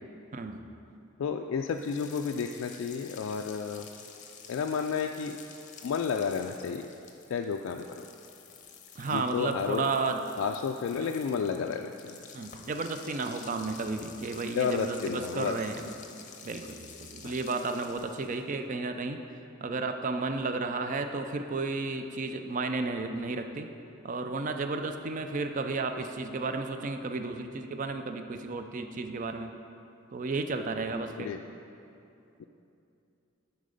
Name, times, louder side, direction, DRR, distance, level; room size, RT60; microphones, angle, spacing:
voice 1, 0.3-0.6 9.0-10.2 11.0-11.1 12.3-15.8 16.4-19.2 19.6-23.7 24.0-29.5 30.1-31.3, right 3 dB, 40° right, 7 dB, 0.4 m, -33 dB
voice 2, 1.2-3.9 4.5-5.4 5.8-6.9 7.3-8.0 9.1-9.9 10.4-12.2 14.5-15.6 17.2-17.3 31.2-31.4 32.4-32.5, left 6 dB, 80° left, 4 dB, 0.3 m, -31 dB
sound 1, 1.7-18.5, left 6 dB, 35° left, 0.6 m, -50 dB
10.5 x 4.2 x 5.1 m, 2.7 s
head